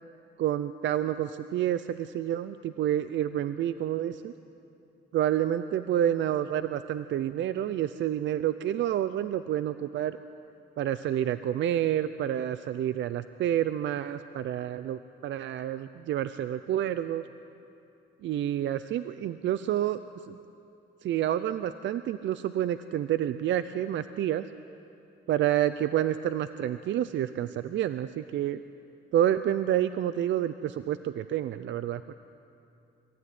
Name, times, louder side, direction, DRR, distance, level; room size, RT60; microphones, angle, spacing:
voice 1, 0.4-4.3 5.1-10.2 10.8-17.2 18.2-20.0 20.3-20.4 21.0-24.5 25.3-28.6 29.1-32.1, right 11 dB, 70° right, 13 dB, 0.6 m, -29 dB
23.0 x 15.0 x 9.4 m, 2.7 s
cardioid pair, 90°, 20 cm